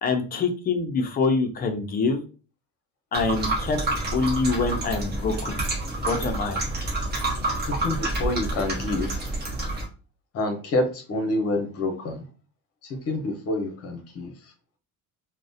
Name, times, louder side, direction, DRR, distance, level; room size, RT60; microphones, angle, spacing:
voice 1, 0.0-2.2 3.1-3.8 4.1-5.6 6.1-6.6, left 4 dB, 30° left, 6 dB, 0.4 m, -25 dB
sound 1, 3.1-9.9, right 2 dB, 35° right, 0.6 m, -28 dB
voice 2, 7.6-9.3 10.3-12.2 13.1-14.3, left 2 dB, 50° left, 4 dB, 0.7 m, -27 dB
2.4 x 2.0 x 2.6 m, 0.36 s
cardioid pair, 155°, 31 cm